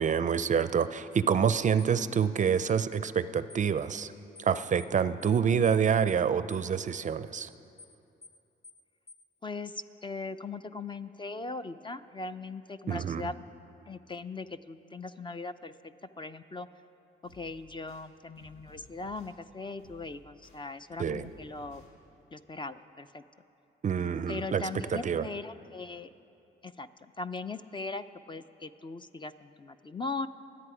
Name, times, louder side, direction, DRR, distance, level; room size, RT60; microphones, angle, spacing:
voice 1, 0.0-4.1 4.4-7.5 12.9-13.2 21.0-21.3 23.8-25.3, right 7 dB, 40° right, 14 dB, 0.5 m, -27 dB
sound 1, 1.8-1.9 2.6-2.8 3.5-3.7 4.3-4.5 4.8-4.9 5.2-5.4 5.6-5.8 6.1-6.2 6.5-6.7 6.9-7.1 7.3-7.5 7.8-7.9 8.2-8.4 8.6-8.8 9.1-9.2, left 3 dB, 45° left, 1.5 m, -51 dB
voice 2, 9.4-13.3 13.9-15.7 16.2-16.7 17.3-21.8 22.3-23.2 24.3-26.1 26.6-30.3, left 3 dB, 25° left, 11 dB, 0.5 m, -39 dB
sound 2, 17.2-18.0 18.3-19.3 19.8-20.6 20.9-21.9, left 1 dB, 80° left, 4.2 m, -57 dB
23.5 x 8.4 x 4.9 m, 2.7 s
cardioid pair, 90°, 20 cm